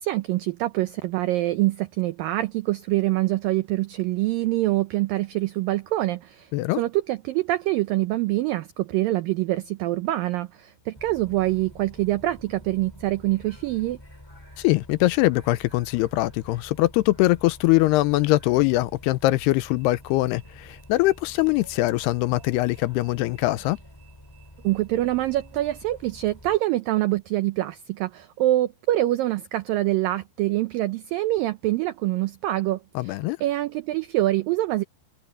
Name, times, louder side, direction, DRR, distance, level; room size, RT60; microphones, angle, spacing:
voice 1, 0.0-14.0 24.6-34.8, right 16 dB, 90° right, 2.0 m, -25 dB
Bus, 10.9-26.6, equal, 5° left, 3.2 m, -48 dB
voice 2, 14.6-23.8 33.0-33.4, left 18 dB, 80° left, 2.6 m, -22 dB
omnidirectional pair, 4.9 m